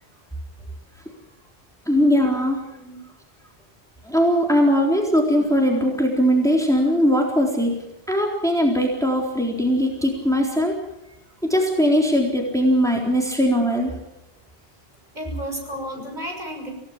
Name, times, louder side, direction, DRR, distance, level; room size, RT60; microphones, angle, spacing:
voice 1, 1.9-2.6 4.0-7.7 8.1-10.7 11.5-13.9, equal, 5° left, 0 dB, 3.9 m, -20 dB
voice 2, 15.1-16.7, equal, 45° right, 1 dB, 7.1 m, -32 dB
27.5 x 17.0 x 7.4 m, 0.89 s
omnidirectional pair, 1.0 m